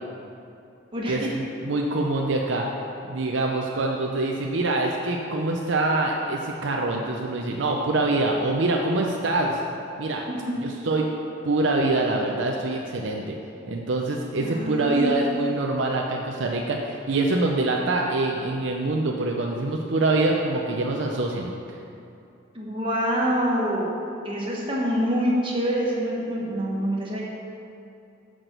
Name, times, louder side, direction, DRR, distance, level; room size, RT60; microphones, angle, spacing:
voice 1, 1.1-2.7 3.1-9.6 10.0-10.2 10.6-11.1 11.4-13.4 13.7-21.5, right 2 dB, 65° right, 0 dB, 0.6 m, -25 dB
voice 2, 10.2-10.6 14.4-15.5 22.5-23.9 24.2-27.2, equal, 25° right, -4 dB, 1.4 m, -26 dB
6.1 x 6.1 x 6.6 m, 2.6 s
head